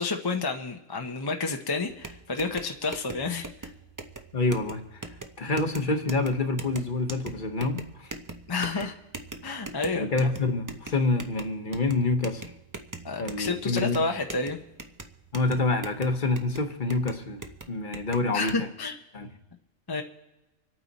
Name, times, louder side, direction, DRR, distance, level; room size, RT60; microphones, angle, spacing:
voice 1, 0.0-3.5 5.5-5.6 8.5-8.9 9.4-10.1 13.0-14.6 18.3-18.9 19.9-20.0, left 3 dB, 25° left, 4 dB, 0.6 m, -30 dB
sound 1, 1.9-18.6, right 2 dB, 25° right, 0.4 m, -42 dB
voice 2, 4.3-8.1 8.7-8.9 10.0-12.5 13.2-14.0 15.3-17.4 17.7-18.7 19.1-19.3, left 3 dB, 40° left, 6 dB, 1.2 m, -27 dB
25.5 x 8.9 x 4.1 m, 1.0 s
omnidirectional pair, 1.4 m